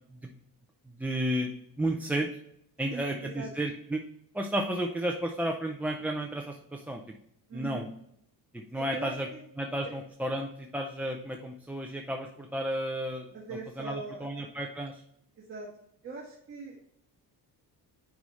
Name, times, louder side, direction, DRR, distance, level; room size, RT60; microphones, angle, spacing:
voice 1, 0.9-2.3 2.8-4.0 4.3-7.2 7.5-7.8 8.5-9.3 9.6-13.3 13.8-15.0, right 1 dB, 5° right, 2 dB, 0.4 m, -32 dB
voice 2, 2.9-3.5 7.5-7.9 8.7-9.4 13.3-14.4 15.4-15.7 16.0-16.8, right 4 dB, 30° right, -4 dB, 1.6 m, -41 dB
9.2 x 4.8 x 3.1 m, 0.73 s
cardioid pair, 170°, 41 cm